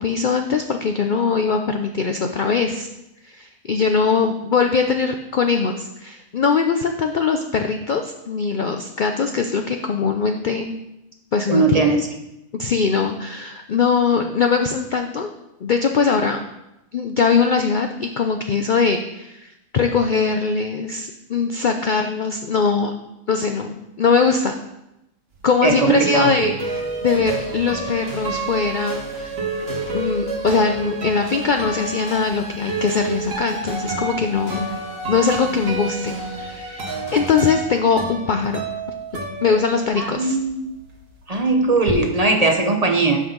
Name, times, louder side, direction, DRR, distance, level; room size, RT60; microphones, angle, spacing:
voice 1, 0.0-2.9 3.3-10.8 11.3-11.9 12.6-15.3 15.6-16.4 16.9-22.9 23.3-24.6 25.4-29.4 29.9-34.7 35.1-38.6 39.4-40.4, left 5 dB, 85° left, 5 dB, 0.4 m, -21 dB
voice 2, 11.5-12.0 25.6-26.3 40.0-40.7 41.3-43.2, right 3 dB, 35° right, 3 dB, 0.6 m, -19 dB
sound 1, 25.4-40.3 40.5-42.0, right 3 dB, 65° right, 1.6 m, -30 dB
sound 2, 26.6-37.3, right 2 dB, 40° left, 2.8 m, -33 dB
11.5 x 5.3 x 3.8 m, 0.89 s
omnidirectional pair, 1.5 m